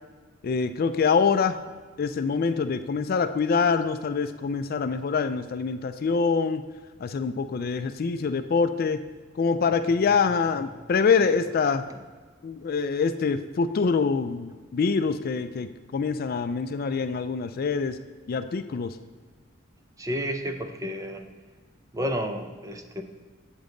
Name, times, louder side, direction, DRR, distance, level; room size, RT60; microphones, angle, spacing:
voice 1, 0.4-1.6 2.0-6.6 7.0-9.0 9.4-11.9 12.4-18.0 18.3-19.0, left 5 dB, 50° left, 10 dB, 0.4 m, -25 dB
voice 2, 20.0-21.2 21.9-23.0, equal, 15° right, 6 dB, 0.6 m, -31 dB
8.2 x 7.0 x 3.8 m, 1.4 s
head